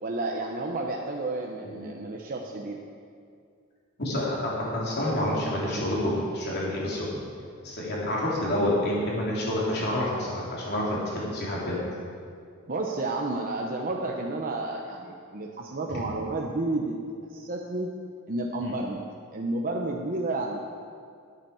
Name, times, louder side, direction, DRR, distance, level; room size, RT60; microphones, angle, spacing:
voice 1, 0.0-2.8 12.7-17.0 17.3-17.9 18.3-19.0 19.3-20.6, right 2 dB, 40° right, 0 dB, 0.9 m, -31 dB
voice 2, 4.0-7.1 7.6-11.8, left 1 dB, 50° left, -5 dB, 3.6 m, -28 dB
12.0 x 8.8 x 7.0 m, 2.3 s
head